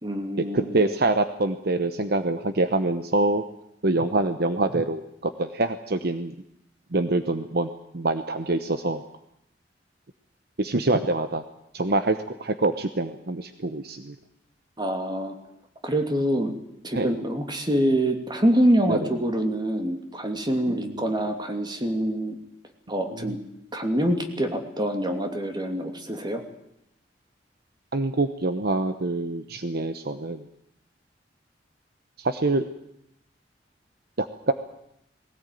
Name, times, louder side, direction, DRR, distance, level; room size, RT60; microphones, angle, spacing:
voice 1, 0.0-0.8 14.8-15.3 15.8-16.5 16.8-22.4 22.9-23.4 23.7-26.4, right 1 dB, 25° right, 5 dB, 2.7 m, -25 dB
voice 2, 0.5-3.4 3.8-6.3 6.9-9.0 10.6-11.4 11.7-14.1 16.9-17.2 18.9-19.1 20.7-21.0 23.1-23.4 27.9-30.4 32.2-32.6 34.2-34.5, right 2 dB, 60° right, 10 dB, 1.0 m, -25 dB
20.0 x 18.0 x 9.3 m, 0.78 s
head